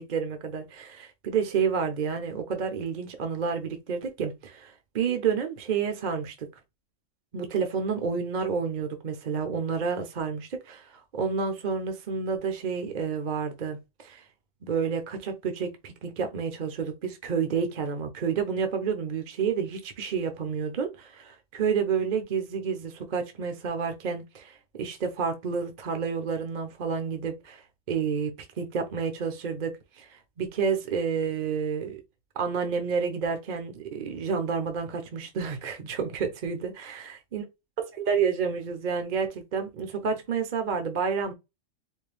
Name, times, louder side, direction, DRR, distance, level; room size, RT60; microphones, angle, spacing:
voice 1, 0.0-6.5 7.3-14.2 14.6-28.3 28.6-32.0 32.4-37.4 38.0-41.3, right 6 dB, 45° right, 0.8 m, -30 dB
4.5 x 2.2 x 3.3 m
omnidirectional pair, 1.4 m